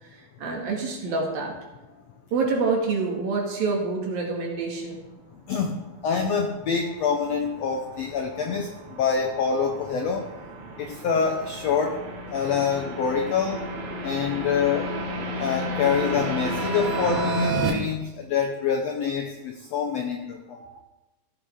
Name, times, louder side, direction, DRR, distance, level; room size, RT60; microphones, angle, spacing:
voice 1, 0.4-1.5 2.3-5.0, right 4 dB, 80° right, -1 dB, 4.0 m, -26 dB
voice 2, 5.3-10.3 10.8-12.0 12.3-13.7 14.0-14.9 15.4-20.7, left 6 dB, 80° left, 4 dB, 1.4 m, -26 dB
sound 1, 6.5-17.7, right 2 dB, 55° right, 2.3 m, -32 dB
16.0 x 8.4 x 3.7 m, 1.1 s
omnidirectional pair, 4.1 m